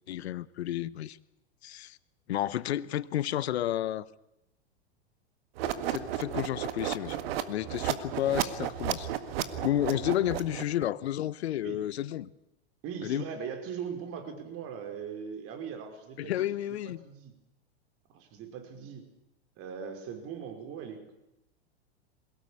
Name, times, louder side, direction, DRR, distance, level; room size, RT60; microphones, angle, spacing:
voice 1, 0.1-1.2 1.6-2.0 2.3-4.0 5.9-9.1 9.6-12.3 13.0-13.3 16.2-17.0, left 12 dB, 75° left, 18 dB, 1.1 m, -31 dB
sound 1, 5.6-10.8, right 11 dB, 65° right, 1.9 m, -33 dB
voice 2, 12.8-17.3 18.1-19.0 19.6-21.1, right 7 dB, 45° right, 6 dB, 5.0 m, -40 dB
22.5 x 18.0 x 8.7 m, 0.87 s
hypercardioid pair, 105°, 33 cm